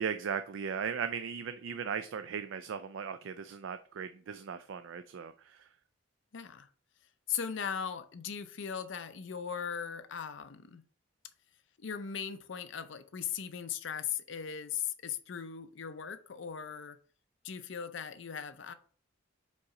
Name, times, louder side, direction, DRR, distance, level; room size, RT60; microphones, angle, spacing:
voice 1, 0.0-5.7, right 7 dB, 75° right, 0.4 m, -37 dB
voice 2, 6.3-6.7 7.3-10.8 11.8-17.0 17.4-18.7, left 8 dB, 70° left, 0.5 m, -38 dB
5.3 x 4.1 x 4.8 m
head